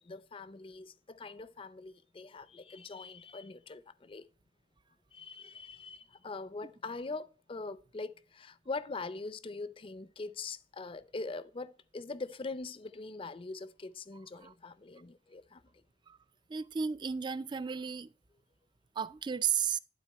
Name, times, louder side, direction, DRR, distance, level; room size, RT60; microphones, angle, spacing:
voice 1, 0.0-4.3 5.1-15.8, left 3 dB, 30° left, 0.5 m, -43 dB
voice 2, 16.5-18.1 19.0-19.8, right 7 dB, 25° right, 0.4 m, -33 dB
12.0 x 4.0 x 4.2 m
head